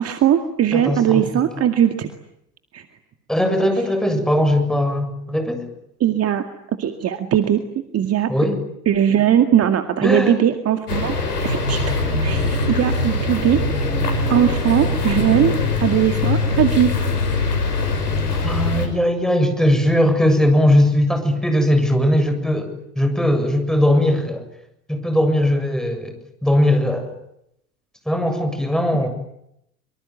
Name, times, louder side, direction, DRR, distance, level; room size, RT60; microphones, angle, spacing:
voice 1, 0.0-2.1 2.7-2.8 6.0-6.4 6.8-7.6 7.9-8.3 8.9-11.1 11.4-13.6 14.3-15.5 15.8-16.9, right 10 dB, 30° right, 8 dB, 2.2 m, -19 dB
voice 2, 0.7-1.4 3.3-5.7 8.3-8.6 10.0-10.4 18.4-24.4 24.9-26.1 26.4-27.1 28.1-29.1, left 1 dB, ahead, 7 dB, 7.4 m, -19 dB
sound 1, 10.9-18.9, left 3 dB, 75° left, 6.5 m, -22 dB
25.5 x 25.0 x 9.3 m, 0.79 s
figure-of-eight pair, 80°, 46 cm